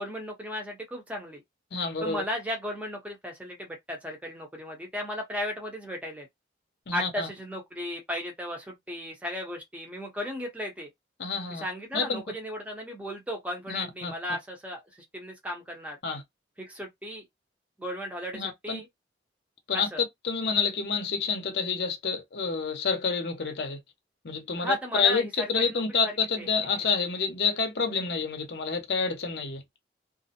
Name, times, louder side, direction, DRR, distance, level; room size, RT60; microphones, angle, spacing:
voice 1, 0.0-1.4 2.0-6.3 6.9-10.9 11.5-16.0 16.6-17.2 17.8-18.9 19.7-20.0 24.6-25.3 25.6-26.1 26.4-26.5, equal, 10° right, 0.7 m, -35 dB
voice 2, 1.7-2.2 6.9-7.3 11.2-11.6 11.9-12.2 13.7-14.1 16.0-16.2 18.3-18.8 19.7-19.9 20.2-23.8 24.2-29.6, left 5 dB, 65° left, 0.7 m, -28 dB
2.4 x 2.0 x 2.7 m
head